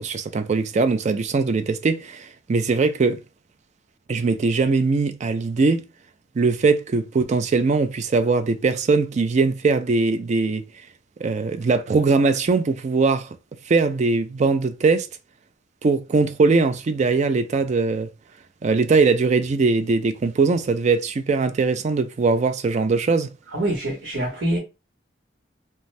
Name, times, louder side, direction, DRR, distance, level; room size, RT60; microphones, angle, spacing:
voice 1, 0.0-3.2 4.1-5.8 6.4-10.6 11.2-13.4 13.7-15.1 15.8-18.1 18.6-23.3, right 4 dB, 40° right, 0.4 m, -21 dB
voice 2, 23.5-24.6, right 1 dB, 85° right, 1.0 m, -25 dB
2.6 x 2.2 x 3.1 m
head